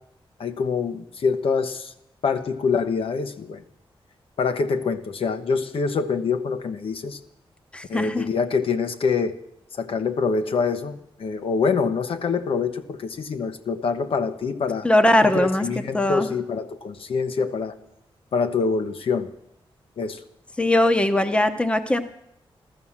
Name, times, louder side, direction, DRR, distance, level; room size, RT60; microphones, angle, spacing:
voice 1, 0.4-1.9 2.2-3.6 4.4-7.2 7.9-9.4 9.7-14.9 15.2-17.7 18.3-19.3 20.0-20.2, left 5 dB, 70° left, 8 dB, 1.0 m, -25 dB
voice 2, 7.7-8.2 14.8-15.6 15.9-16.3 20.6-22.0, left 1 dB, 10° left, 9 dB, 0.8 m, -20 dB
14.0 x 13.0 x 7.3 m, 0.79 s
wide cardioid pair, 155°, 10 cm